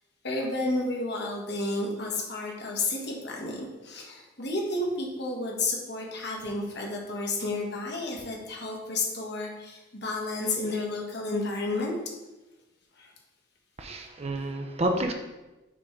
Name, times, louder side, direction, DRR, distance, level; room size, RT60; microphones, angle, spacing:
voice 1, 0.2-11.9 13.0-13.1, left 2 dB, 60° left, -1 dB, 1.3 m, -31 dB
voice 2, 13.8-15.1, right 1 dB, 30° right, 4 dB, 0.5 m, -29 dB
5.9 x 3.7 x 4.4 m, 1.1 s
head